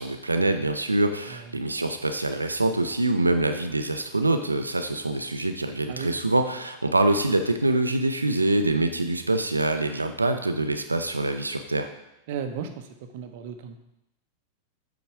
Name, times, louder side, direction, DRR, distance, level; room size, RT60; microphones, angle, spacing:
voice 1, 0.0-11.9, right 2 dB, 80° right, 7 dB, 0.5 m, -25 dB
voice 2, 12.3-13.8, right 7 dB, 50° right, 7 dB, 0.8 m, -35 dB
8.5 x 4.0 x 4.7 m, 0.86 s
figure-of-eight pair, 90°, 0 cm